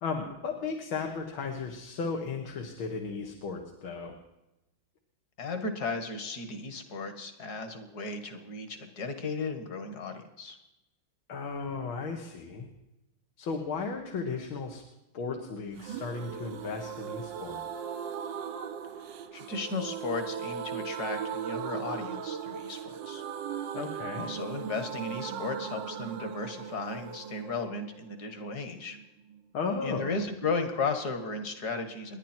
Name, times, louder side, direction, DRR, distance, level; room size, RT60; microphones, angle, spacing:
voice 1, 0.0-4.2 11.3-12.7 13.4-14.8 15.1-17.6 23.7-24.3 29.5-30.2, left 4 dB, 75° left, 2 dB, 2.4 m, -35 dB
voice 2, 5.4-10.6 19.3-23.2 24.2-29.0 29.8-32.2, left 4 dB, 50° left, 7 dB, 2.3 m, -35 dB
sound 1, 15.8-29.4 29.7-29.8 30.0-30.1, right 8 dB, 70° right, 1.4 m, -38 dB
29.5 x 11.0 x 4.5 m, 0.95 s
omnidirectional pair, 2.2 m